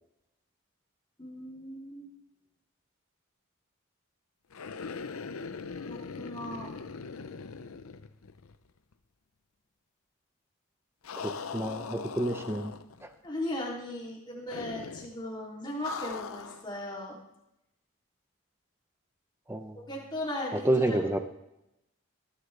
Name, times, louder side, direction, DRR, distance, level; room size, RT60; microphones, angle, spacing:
voice 1, 1.2-2.1 5.8-6.7 13.2-17.2 19.7-21.0, left 1 dB, 20° left, -2 dB, 2.9 m, -37 dB
sound 1, 4.5-8.7 8.9-9.0 11.0-13.1 14.5-15.2 15.8-16.7, left 5 dB, 85° left, 0.7 m, -41 dB
voice 2, 11.2-12.7 13.0-13.1 19.5-19.8 20.6-21.2, right 1 dB, 10° right, 8 dB, 0.6 m, -29 dB
19.5 x 11.5 x 3.3 m, 0.86 s
head